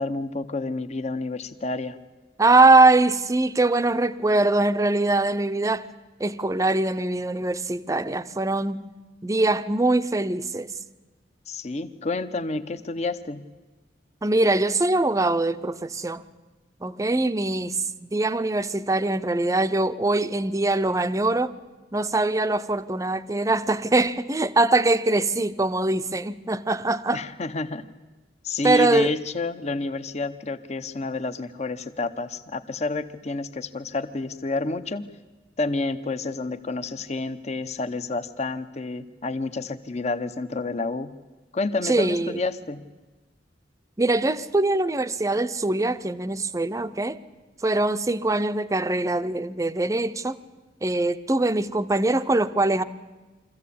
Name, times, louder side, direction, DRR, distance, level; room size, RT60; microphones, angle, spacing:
voice 1, 0.0-2.0 11.5-13.5 27.1-27.9 28.4-35.0 35.6-41.1 41.5-42.9, left 3 dB, 40° left, 0.8 m, -29 dB
voice 2, 2.4-5.9 6.2-8.8 9.2-10.7 14.2-16.2 16.8-21.5 21.9-27.2 28.6-29.1 41.8-42.4 44.0-47.2 47.6-50.4 50.8-52.8, right 2 dB, 20° right, 0.6 m, -22 dB
23.5 x 14.5 x 8.5 m
head